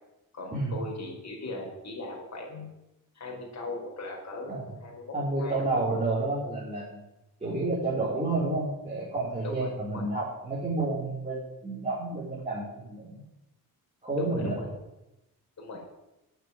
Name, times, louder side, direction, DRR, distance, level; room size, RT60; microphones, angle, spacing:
voice 1, 0.3-2.7 3.1-5.6 9.4-10.0 14.2-14.7 15.6-15.8, left 2 dB, 45° left, 0 dB, 4.9 m, -38 dB
voice 2, 5.1-7.0 7.4-13.2 14.0-14.6, right 2 dB, 20° right, -6 dB, 4.6 m, -30 dB
8.9 x 8.3 x 9.4 m, 0.94 s
cardioid pair, 95°, 36 cm